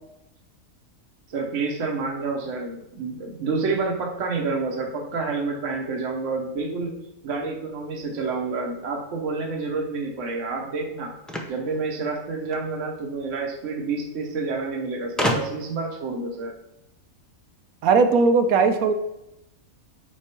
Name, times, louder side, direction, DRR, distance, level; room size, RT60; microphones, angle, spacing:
voice 1, 1.3-6.9 7.2-11.1 11.5-16.5, right 4 dB, 60° right, 0 dB, 1.3 m, -29 dB
sound 1, 11.3-12.7 13.8-13.9 14.1-14.2 15.2-15.8, equal, ahead, 0.3 m, -28 dB
voice 2, 17.8-18.9, right 4 dB, 80° right, 8 dB, 1.1 m, -18 dB
5.2 x 4.8 x 4.4 m, 0.88 s
omnidirectional pair, 1.5 m